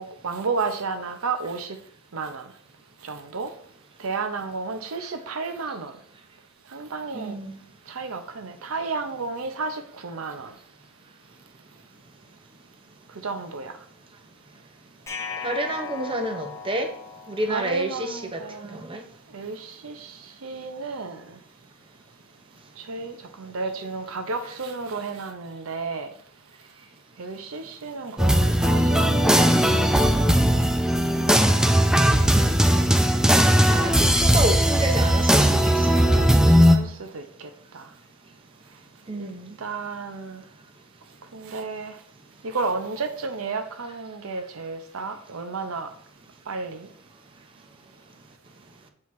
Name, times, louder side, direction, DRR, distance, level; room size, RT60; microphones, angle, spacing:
voice 1, 0.0-1.8 2.1-2.5 3.0-3.5 4.0-6.0 6.7-7.4 7.9-10.5 13.2-13.7 17.4-18.8 19.3-21.4 22.8-26.1 27.2-30.0 31.4-32.4 36.0-36.3 36.6-37.9 39.2-39.3 39.6-40.4 41.3-41.9 42.4-45.9 46.5-46.9, right 4 dB, 80° right, 8 dB, 0.7 m, -32 dB
voice 2, 7.1-7.6 15.4-16.9 17.3-19.0 33.7-36.0 39.1-39.5, right 1 dB, 25° right, 5 dB, 0.8 m, -29 dB
sound 1, 15.1-18.1, left 5 dB, 15° left, 0.9 m, -37 dB
sound 2, 28.2-36.8, equal, 5° right, 0.4 m, -18 dB
7.5 x 5.8 x 3.1 m, 0.63 s
head